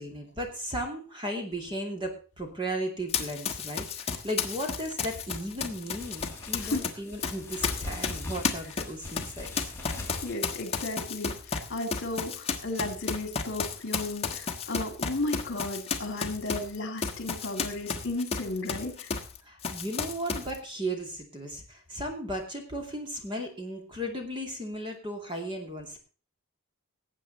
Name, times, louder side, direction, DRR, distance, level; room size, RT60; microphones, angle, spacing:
voice 1, 0.0-9.5 19.4-26.0, right 1 dB, 20° right, 3 dB, 2.5 m, -35 dB
Run, 3.1-6.9 7.2-19.4 19.6-20.6, left 5 dB, 25° left, 1.4 m, -33 dB
sound 1, 5.6-10.3, left 2 dB, 10° left, 3.2 m, -41 dB
voice 2, 10.2-19.1, left 2 dB, 55° left, 6 dB, 2.4 m, -34 dB
19.0 x 8.3 x 4.1 m, 0.38 s
head